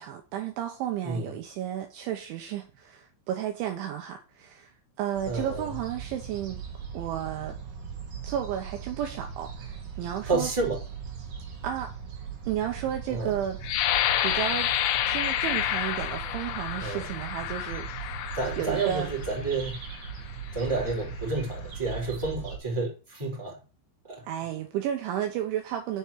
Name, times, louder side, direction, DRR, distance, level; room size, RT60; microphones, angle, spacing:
voice 1, 0.0-6.6 6.9-7.6 8.2-10.5 11.6-11.9 12.5-13.6 14.2-14.7 15.1-17.9 18.6-19.1 24.2-26.0, right 10 dB, 75° right, 3.1 m, -32 dB
sound 1, 5.1-22.6, right 6 dB, 45° right, 3.1 m, -39 dB
voice 2, 5.2-5.7 10.3-10.8 13.1-13.3 16.8-17.0 18.3-19.7 20.5-23.6 24.0-24.2, right 3 dB, 5° right, 4.1 m, -30 dB
sound 2, 13.6-19.3 20.0-20.1 20.6-21.0, left 11 dB, 85° left, 2.4 m, -29 dB
7.2 x 6.9 x 7.4 m
omnidirectional pair, 6.0 m